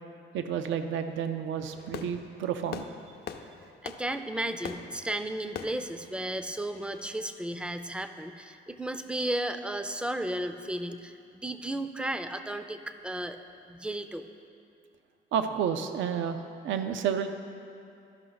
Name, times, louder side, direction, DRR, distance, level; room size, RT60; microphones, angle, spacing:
voice 1, 0.3-2.8 15.3-17.3, right 8 dB, 75° right, 8 dB, 0.5 m, -30 dB
Fireworks, 1.6-7.2, left 7 dB, 55° left, 0.5 m, -44 dB
voice 2, 3.8-13.4 13.7-14.3, right 1 dB, 5° right, 9 dB, 0.4 m, -34 dB
12.5 x 5.4 x 3.9 m, 2.6 s
cardioid pair, 90°, 20 cm